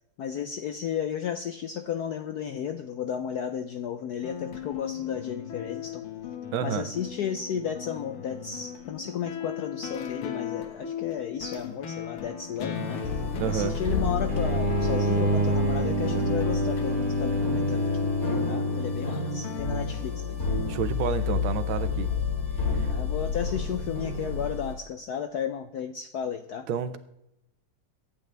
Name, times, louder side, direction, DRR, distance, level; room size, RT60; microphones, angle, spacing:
voice 1, 0.2-6.1 6.6-13.2 13.5-18.1 18.5-20.4 21.1-21.2 22.9-26.7, left 8 dB, 70° left, 8 dB, 0.9 m, -33 dB
sound 1, 4.2-19.8, left 8 dB, 90° left, 2.5 m, -37 dB
voice 2, 6.5-6.9 13.4-13.8 20.7-22.1 22.7-22.9 26.7-27.0, right 8 dB, 70° right, 11 dB, 1.6 m, -29 dB
sound 2, 12.7-24.7, left 4 dB, 40° left, 3.1 m, -31 dB
sound 3, 14.3-19.7, equal, 25° right, 1.9 m, -27 dB
23.0 x 9.3 x 3.4 m, 0.85 s
omnidirectional pair, 2.4 m